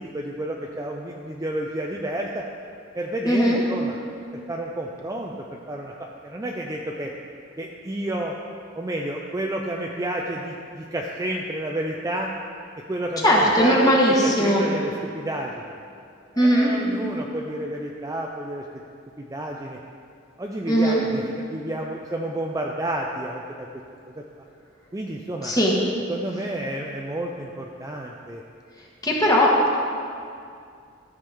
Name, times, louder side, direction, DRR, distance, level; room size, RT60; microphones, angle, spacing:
voice 1, 0.0-2.5 2.9-4.0 4.3-5.3 5.7-5.9 6.2-7.1 7.6-8.3 8.7-12.3 12.9-13.9 14.2-15.6 16.3-18.6 19.2-19.8 20.4-21.2 21.5-23.7 24.1-24.2 24.9-25.5 26.1-28.4, right 1 dB, 15° right, -1 dB, 0.5 m, -30 dB
voice 2, 3.3-3.6 13.2-14.6 16.4-16.7 20.7-21.0 25.4-25.7 29.0-29.7, equal, 20° left, -3 dB, 1.4 m, -18 dB
13.0 x 7.3 x 3.5 m, 2.3 s
head